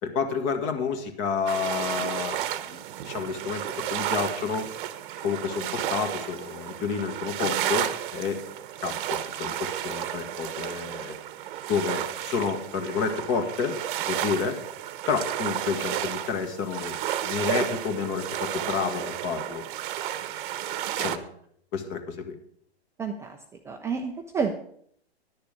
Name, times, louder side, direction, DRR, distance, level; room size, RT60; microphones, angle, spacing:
voice 1, 0.0-2.4 2.7-3.6 3.9-4.7 5.2-8.4 8.8-11.2 11.7-13.8 14.1-14.6 15.1-17.0 17.2-19.6 20.9-21.2 21.7-22.4, left 5 dB, 35° left, 7 dB, 1.7 m, -30 dB
sound 1, 1.5-21.2, right 11 dB, 50° right, 0.9 m, -32 dB
voice 2, 23.0-24.5, right 5 dB, 10° right, 3 dB, 0.4 m, -31 dB
11.0 x 6.7 x 6.6 m, 0.66 s
hypercardioid pair, 125°, 32 cm